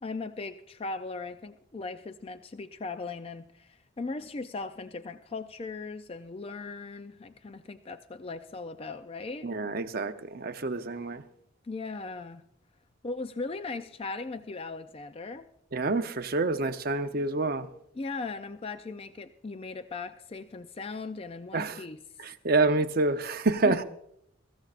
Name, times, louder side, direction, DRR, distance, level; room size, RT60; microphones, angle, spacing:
voice 1, 0.0-9.5 11.6-12.4 13.0-15.5 17.9-22.0 23.6-23.8, left 3 dB, 30° left, 10 dB, 0.4 m, -38 dB
voice 2, 9.4-11.2 15.7-17.7 21.5-21.8 22.2-23.8, right 3 dB, 45° right, 8 dB, 0.7 m, -27 dB
22.5 x 14.0 x 2.5 m, 0.73 s
head